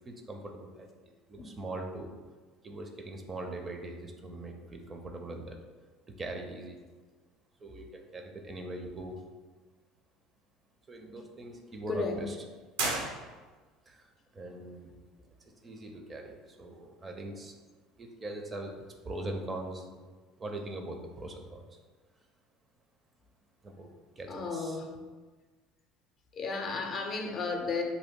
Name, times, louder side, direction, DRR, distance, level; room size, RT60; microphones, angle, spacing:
voice 1, 0.1-0.9 1.3-2.1 2.6-5.6 6.2-6.8 7.6-9.2 10.9-12.3 13.9-14.0 14.3-14.9 15.6-17.5 18.0-18.7 19.1-19.9 20.4-21.6 23.6-24.8, right 2 dB, 30° right, 3 dB, 0.5 m, -41 dB
voice 2, 11.9-12.2 24.3-25.0 26.3-27.8, left 4 dB, 45° left, 2 dB, 0.5 m, -33 dB
sound 1, 12.8-13.8, right 3 dB, 80° right, 0.6 m, -34 dB
2.7 x 2.2 x 3.6 m, 1.4 s
hypercardioid pair, 80°, 0 cm